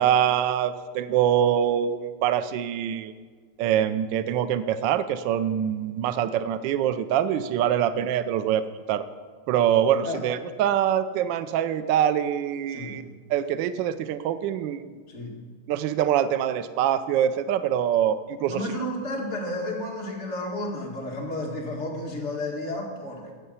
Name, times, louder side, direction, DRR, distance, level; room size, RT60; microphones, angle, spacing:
voice 1, 0.0-3.1 3.6-9.0 9.5-14.8 15.7-18.6, right 10 dB, 75° right, 11 dB, 1.1 m, -24 dB
voice 2, 18.4-23.3, left 1 dB, 30° left, -2 dB, 2.3 m, -32 dB
16.5 x 6.8 x 5.6 m, 1.5 s
omnidirectional pair, 2.3 m